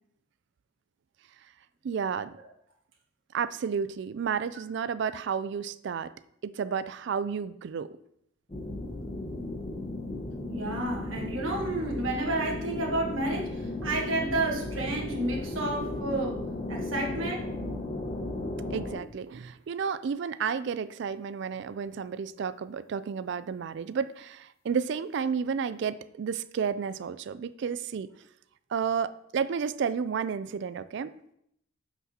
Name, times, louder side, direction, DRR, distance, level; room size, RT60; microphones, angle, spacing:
voice 1, 1.8-2.3 3.3-6.1 6.4-8.0 18.7-28.1 28.7-31.1, right 6 dB, 60° right, 14 dB, 0.3 m, -31 dB
sound 1, 8.5-19.0, left 2 dB, 30° left, 1.1 m, -35 dB
voice 2, 10.5-16.4 16.7-17.5, right 2 dB, 75° right, -1 dB, 1.5 m, -31 dB
9.4 x 6.0 x 2.9 m, 0.73 s
head